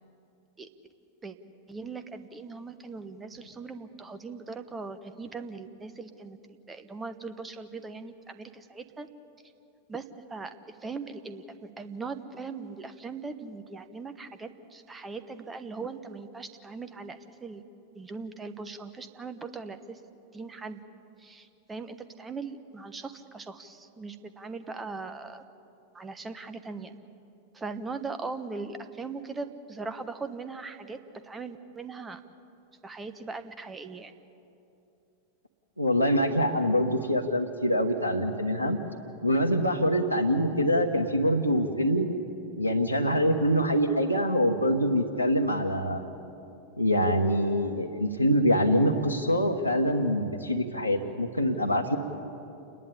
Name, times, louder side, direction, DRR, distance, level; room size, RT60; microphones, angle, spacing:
voice 1, 1.7-9.1 9.9-10.5 10.8-17.6 17.9-20.0 20.3-20.8 21.2-25.4 25.9-27.0 27.5-31.0 31.2-32.2 32.8-34.1, right 4 dB, 15° right, 10 dB, 1.1 m, -40 dB
voice 2, 35.8-38.8 39.2-42.1 42.6-46.1 46.8-52.0, equal, 90° right, 4 dB, 1.1 m, -25 dB
28.5 x 11.0 x 9.8 m, 2.8 s
figure-of-eight pair, 90°, 0 cm